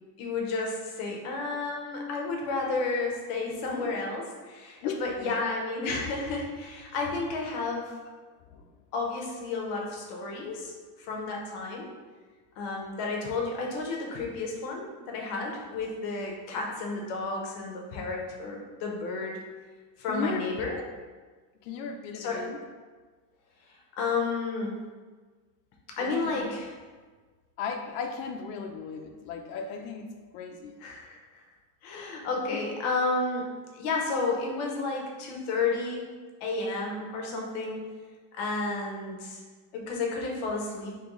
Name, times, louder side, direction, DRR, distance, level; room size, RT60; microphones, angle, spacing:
voice 1, 0.2-7.9 8.9-10.7 11.0-11.9 12.6-19.4 20.0-20.8 22.1-22.4 24.0-24.7 26.0-26.7 30.8-31.2 31.8-33.5 33.7-36.0 36.4-37.9 38.3-39.4 39.7-41.0, left 3 dB, 50° left, 0 dB, 0.8 m, -31 dB
voice 2, 4.8-5.3 8.5-8.7 20.1-20.8 21.6-22.6 26.0-26.4 27.6-30.1 30.3-30.8 32.5-32.6, left 6 dB, 90° left, 4 dB, 0.7 m, -36 dB
3.8 x 3.0 x 3.0 m, 1.4 s
cardioid pair, 170°, 49 cm